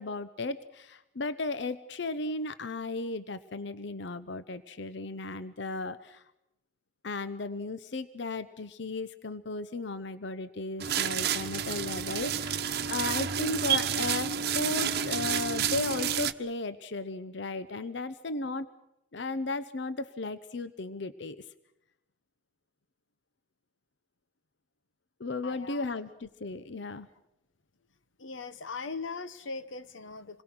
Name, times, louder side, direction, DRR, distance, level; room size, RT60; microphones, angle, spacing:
voice 1, 0.0-6.2 7.0-18.7 19.1-21.4 25.2-27.1, left 3 dB, 65° left, 0.8 m, -35 dB
sound 1, 10.8-16.3, right 8 dB, 55° right, 1.0 m, -30 dB
voice 2, 25.4-25.9 28.2-30.4, left 4 dB, 90° left, 1.1 m, -40 dB
27.5 x 21.5 x 6.1 m
head